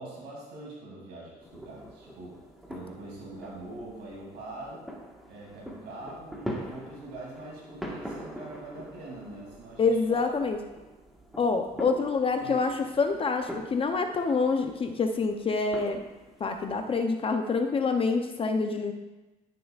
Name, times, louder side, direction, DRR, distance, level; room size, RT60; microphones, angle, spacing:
voice 1, 0.0-2.4 2.7-4.8 5.3-10.2 12.4-12.6, right 2 dB, 80° right, -3 dB, 2.8 m, -43 dB
sound 1, 1.4-17.0, equal, ahead, 1.4 m, -44 dB
voice 2, 9.8-10.6 11.4-16.0 16.4-18.9, left 4 dB, 35° left, 6 dB, 0.6 m, -26 dB
13.5 x 6.8 x 2.4 m, 1.1 s
cardioid pair, 110°, 17 cm